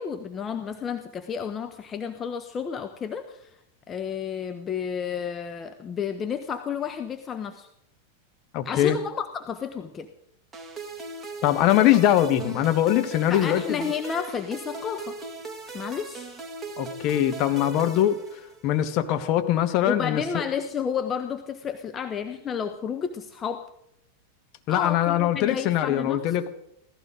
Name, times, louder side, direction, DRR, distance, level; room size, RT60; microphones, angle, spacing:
voice 1, 0.0-3.5 3.9-7.7 8.6-10.1 13.3-15.2 15.7-16.3 19.9-23.6 24.7-26.4, left 7 dB, 25° left, 7 dB, 1.1 m, -31 dB
voice 2, 8.5-9.0 11.4-13.8 16.8-18.2 18.6-20.2 24.7-26.5, left 12 dB, 40° left, 7 dB, 1.6 m, -22 dB
sound 1, 10.5-18.8, right 3 dB, 10° right, 2.3 m, -39 dB
17.0 x 14.5 x 5.1 m, 0.78 s
figure-of-eight pair, 90°, 0 cm